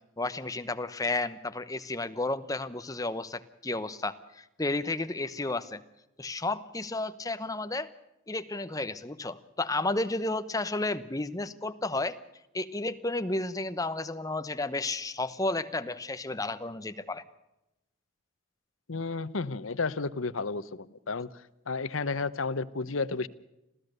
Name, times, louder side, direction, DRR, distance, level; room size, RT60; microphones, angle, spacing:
voice 1, 0.2-5.8 6.2-7.9 8.3-12.2 12.5-17.2, left 2 dB, 15° left, 11 dB, 0.9 m, -32 dB
voice 2, 18.9-21.3 21.7-23.3, left 4 dB, 75° left, 16 dB, 0.9 m, -32 dB
27.0 x 16.0 x 6.7 m, 0.91 s
head